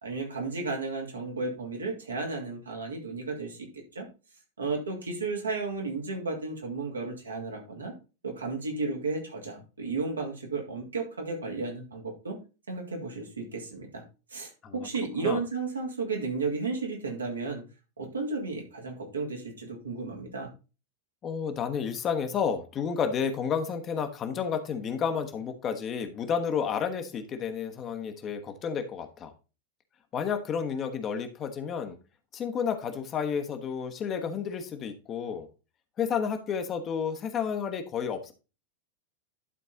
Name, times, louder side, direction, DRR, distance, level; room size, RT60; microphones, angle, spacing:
voice 1, 0.0-3.6 3.9-4.0 4.6-7.9 8.2-12.4 12.7-14.0 14.3-17.6 18.0-20.5, right 3 dB, 75° right, 1 dB, 2.6 m, -33 dB
voice 2, 21.2-29.3 30.1-32.0 32.3-35.5 36.0-38.3, left 7 dB, 30° left, 6 dB, 1.2 m, -31 dB
11.5 x 4.5 x 3.9 m, 0.31 s
figure-of-eight pair, 90°, 0 cm